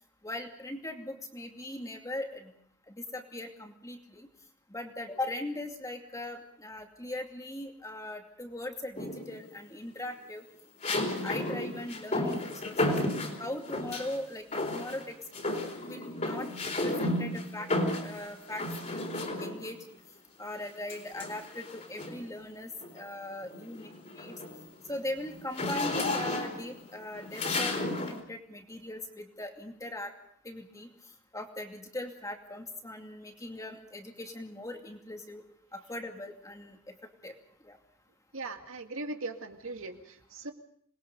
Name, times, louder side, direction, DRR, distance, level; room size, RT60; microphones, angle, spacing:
voice 1, 0.2-2.5 2.9-4.3 4.7-10.4 10.9-13.0 13.4-15.2 15.9-16.5 16.8-17.7 18.0-19.8 20.4-24.3 24.9-30.1 30.4-30.9 31.3-35.4 35.7-36.9 37.2-37.3 37.6-37.8, left 1 dB, 15° left, 3 dB, 2.5 m, -40 dB
sound 1, 9.0-9.5 10.8-14.2 14.5-15.1 15.3-19.8 20.9-22.3 22.8-23.1 23.4-28.2, left 2 dB, 35° left, 4.0 m, -33 dB
voice 2, 38.3-40.5, right 2 dB, 75° right, 5 dB, 2.3 m, -39 dB
27.5 x 21.0 x 5.3 m, 0.66 s
head